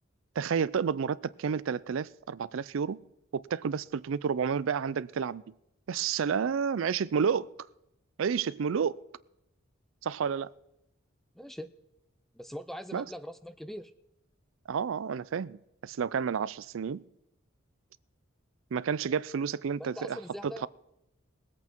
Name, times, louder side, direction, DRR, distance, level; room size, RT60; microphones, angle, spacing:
voice 1, 0.4-3.0 3.3-5.4 5.9-7.5 8.2-9.0 10.0-10.5 12.9-13.0 14.7-17.0 18.7-20.2 20.4-20.7, right 6 dB, 70° right, 0.4 m, -30 dB
voice 2, 11.4-11.7 12.4-13.9 19.8-20.7, equal, ahead, 0.4 m, -42 dB
21.0 x 8.4 x 4.5 m
head